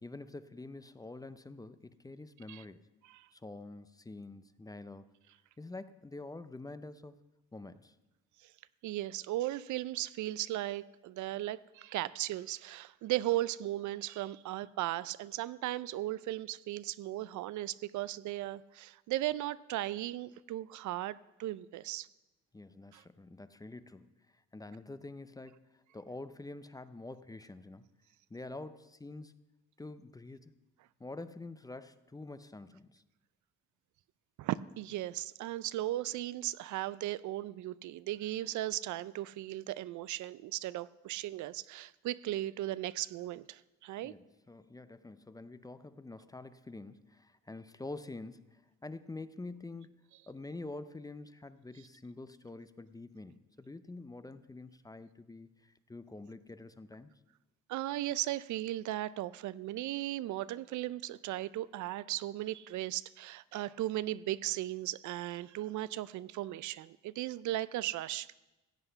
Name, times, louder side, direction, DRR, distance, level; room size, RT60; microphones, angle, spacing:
voice 1, 0.0-2.9 3.3-5.1 5.6-7.2 7.5-7.9 22.5-27.8 28.3-29.3 29.8-30.5 31.0-33.0 44.0-57.1, left 2 dB, 10° left, 13 dB, 0.5 m, -47 dB
voice 2, 8.8-22.1 22.9-23.0 34.4-44.1 57.7-68.3, right 15 dB, 75° right, 18 dB, 0.4 m, -37 dB
15.5 x 7.9 x 5.6 m, 1.0 s
cardioid pair, 90°, 30 cm